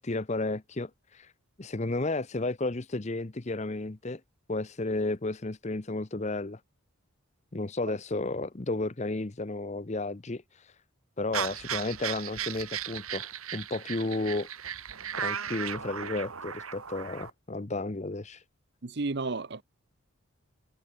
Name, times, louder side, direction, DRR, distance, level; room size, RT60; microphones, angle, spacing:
voice 1, 0.0-1.3 1.6-4.2 4.5-6.6 7.5-10.8 11.2-14.5 15.2-18.4, left 2 dB, 30° left, 0.8 m, -33 dB
sound 1, 11.3-17.3, right 8 dB, 85° right, 2.3 m, -36 dB
voice 2, 18.8-19.6, right 3 dB, 50° right, 0.8 m, -32 dB
head